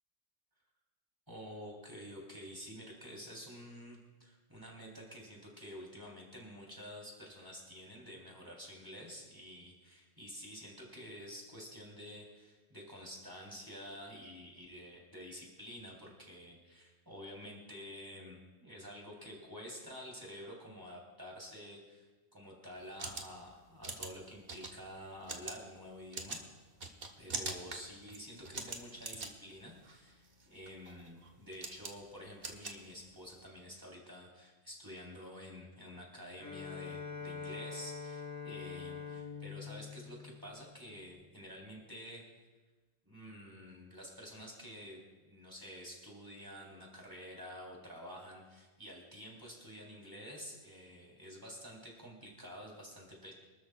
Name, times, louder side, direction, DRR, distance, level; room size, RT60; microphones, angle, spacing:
voice 1, 1.3-26.4 27.2-42.2 43.1-53.3, equal, 15° right, -3 dB, 3.6 m, -49 dB
sound 1, 22.8-33.4, right 3 dB, 45° right, 1.4 m, -45 dB
Bowed string instrument, 36.4-41.1, left 5 dB, 15° left, 1.2 m, -45 dB
26.0 x 13.0 x 2.4 m, 1.2 s
omnidirectional pair, 1.3 m